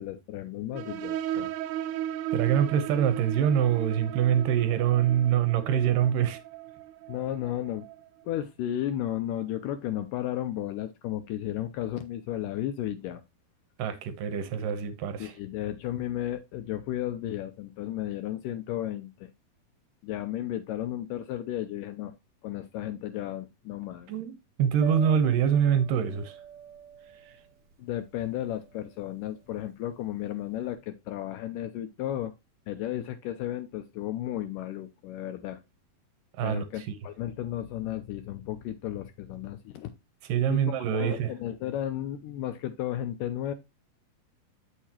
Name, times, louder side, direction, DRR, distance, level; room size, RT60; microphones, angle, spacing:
voice 1, 0.0-1.5 7.1-7.9 8.2-13.2 15.2-19.3 20.0-22.1 22.4-24.1 27.8-32.3 32.7-35.6 36.4-39.9 40.5-43.5, left 12 dB, 80° left, 2.0 m, -34 dB
sound 1, 0.7-8.0, right 11 dB, 90° right, 1.8 m, -36 dB
voice 2, 2.3-6.4 13.8-15.3 24.1-24.3 24.6-26.4 27.2-27.3 36.4-36.9 40.3-41.3, right 9 dB, 70° right, 2.3 m, -25 dB
Piano, 24.8-30.7, right 9 dB, 55° right, 1.6 m, -47 dB
9.1 x 6.6 x 2.9 m
omnidirectional pair, 4.3 m